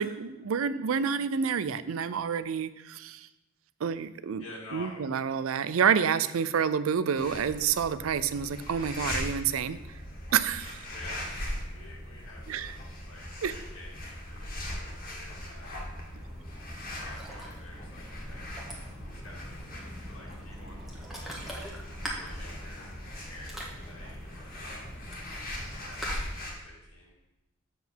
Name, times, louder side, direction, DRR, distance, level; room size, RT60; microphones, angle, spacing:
voice 1, 0.0-3.3 3.8-4.4 4.7-9.8 10.3-10.8 12.5-12.7 13.4-13.5, right 7 dB, 80° right, 14 dB, 0.4 m, -28 dB
voice 2, 4.4-5.0 10.9-11.3 11.7-15.8 16.9-18.8 19.1-20.8 21.1-21.4 22.2-23.0 23.2-24.9 25.3-27.1, left 2 dB, 85° left, -3 dB, 2.3 m, -50 dB
sound 1, 7.2-26.5, left 1 dB, 45° left, 1.7 m, -40 dB
Ocean, 16.1-26.1, equal, ahead, 1.4 m, -43 dB
7.5 x 5.7 x 4.5 m, 1.0 s
head